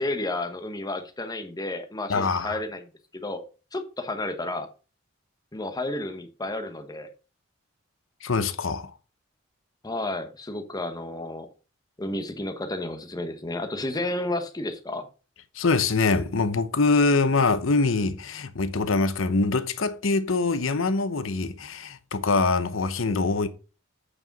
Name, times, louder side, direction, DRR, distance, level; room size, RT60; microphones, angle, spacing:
voice 1, 0.0-2.8 3.1-3.4 3.7-4.7 5.5-7.1 9.8-11.5 12.0-15.1, left 2 dB, 20° left, 1.0 m, -31 dB
voice 2, 2.1-2.6 8.2-8.9 15.5-23.5, left 3 dB, 75° left, 0.8 m, -24 dB
8.6 x 4.9 x 5.2 m
head